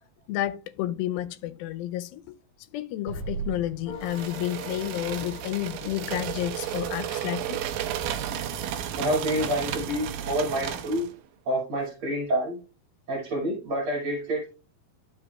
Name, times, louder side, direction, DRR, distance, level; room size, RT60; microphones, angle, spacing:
voice 1, 0.3-2.3 2.7-7.6, left 13 dB, 90° left, 2.5 m, -31 dB
Explosion, 3.1-6.3, right 5 dB, 70° right, 1.9 m, -39 dB
sound 1, 3.8-7.2, left 6 dB, 60° left, 2.5 m, -45 dB
sound 2, 4.0-11.1, right 9 dB, 85° right, 2.5 m, -33 dB
voice 2, 9.0-11.1 11.5-12.6 13.1-14.5, equal, 40° right, 2.9 m, -28 dB
12.0 x 5.7 x 2.3 m
omnidirectional pair, 4.1 m